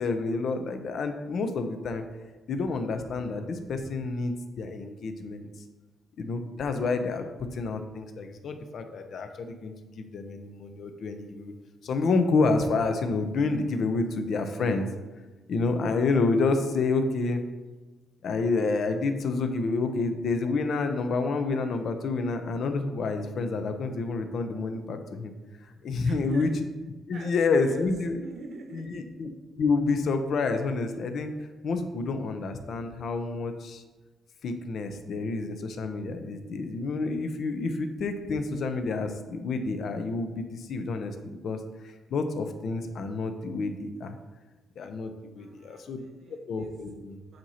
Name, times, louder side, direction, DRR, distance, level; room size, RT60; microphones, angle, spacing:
voice 1, 0.0-2.0 2.5-5.5 6.2-7.2 7.5-11.5 11.8-14.9 15.5-17.4 18.2-25.3 25.8-26.5 27.1-28.2 28.7-29.3 29.6-31.3 31.6-33.8 34.4-41.6 42.1-44.2 44.8-46.0 46.5-47.2, left 3 dB, 60° left, 7 dB, 0.7 m, -29 dB
voice 2, 26.0-26.5 27.1-27.9 28.2-29.0 45.4-46.7 47.3-47.4, right 4 dB, 60° right, 3 dB, 1.1 m, -44 dB
7.6 x 2.9 x 5.6 m, 1.2 s
cardioid pair, 90°, 0 cm